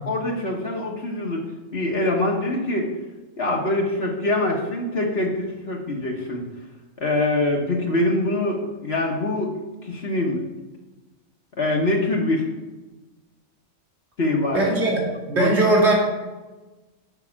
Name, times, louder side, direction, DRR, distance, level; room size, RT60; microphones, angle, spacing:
voice 1, 0.1-1.4 1.7-2.9 3.4-6.4 7.0-9.6 9.8-10.4 11.6-12.5 14.2-14.6 15.4-15.5, left 2 dB, 50° left, -1 dB, 1.4 m, -24 dB
voice 2, 14.5-15.0 15.3-15.9, right 2 dB, 55° right, -3 dB, 2.8 m, -19 dB
7.1 x 5.7 x 7.2 m, 1.2 s
omnidirectional pair, 1.4 m